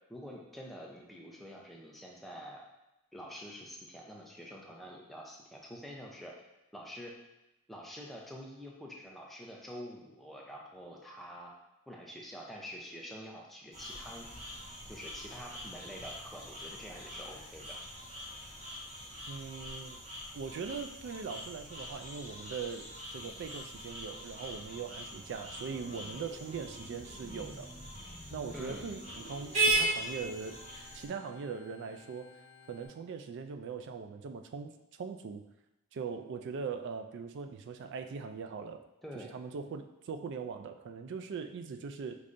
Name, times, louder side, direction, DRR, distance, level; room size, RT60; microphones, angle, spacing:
voice 1, 0.1-2.6 3.1-6.3 6.7-7.1 7.7-11.5 11.9-14.3 14.9-17.8 28.5-28.9 39.0-39.4, equal, ahead, -3 dB, 0.6 m, -47 dB
sound 1, 13.7-31.1, right 2 dB, 30° right, 1.0 m, -39 dB
voice 2, 19.3-20.0 20.3-27.7 28.3-30.6 30.9-32.4 32.7-35.4 35.9-38.8 39.1-42.2, right 5 dB, 55° right, 7 dB, 0.3 m, -41 dB
Organ, 25.5-32.9, left 1 dB, 75° left, 1.0 m, -52 dB
5.1 x 3.2 x 2.6 m, 0.94 s
head